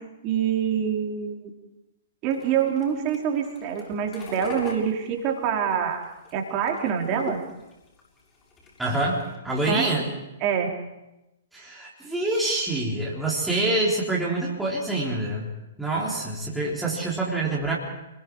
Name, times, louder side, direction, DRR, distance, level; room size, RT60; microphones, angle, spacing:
voice 1, 0.2-1.5 2.2-6.0 6.3-7.4 9.7-9.9 10.4-10.7, right 8 dB, 30° right, 1 dB, 3.9 m, -25 dB
sound 1, 2.3-9.4, left 4 dB, 20° left, 7.2 m, -43 dB
voice 2, 8.8-10.1 11.5-15.5 15.8-17.7, right 2 dB, 5° right, -6 dB, 3.8 m, -26 dB
29.0 x 21.5 x 4.8 m, 0.97 s
figure-of-eight pair, 115°, 0 cm